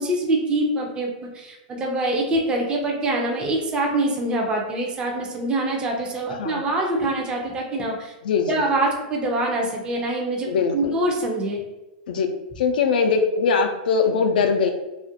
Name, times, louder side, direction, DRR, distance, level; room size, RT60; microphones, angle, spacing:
voice 1, 0.0-8.1 8.5-11.6, right 1 dB, 20° right, 0 dB, 0.5 m, -24 dB
voice 2, 8.2-8.6 10.5-10.9 12.1-12.3 12.6-14.7, left 5 dB, 75° left, 5 dB, 0.4 m, -21 dB
2.4 x 2.1 x 2.7 m, 1.0 s
hypercardioid pair, 130°, 5 cm